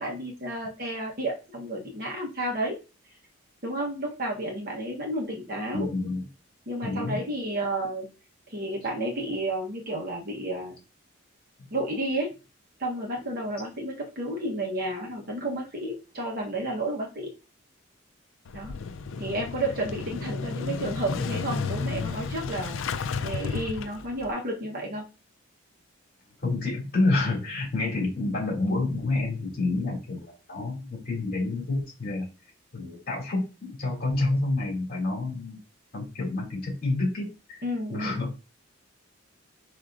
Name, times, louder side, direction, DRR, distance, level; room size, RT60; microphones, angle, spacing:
voice 1, 0.0-2.7 3.6-5.9 6.7-8.1 8.5-10.8 11.7-12.3 12.8-17.3 18.5-18.7 19.2-25.0 37.6-38.2, right 1 dB, 45° right, -1 dB, 1.1 m, -31 dB
voice 2, 5.7-6.2 6.8-7.2 11.6-11.7 26.4-32.3 32.7-35.6 35.9-37.6 37.9-38.5, left 2 dB, 45° left, -3 dB, 2.5 m, -28 dB
Motorcycle / Engine starting, 18.4-24.3, left 4 dB, 70° left, 0.4 m, -32 dB
5.0 x 4.1 x 2.6 m, 0.31 s
head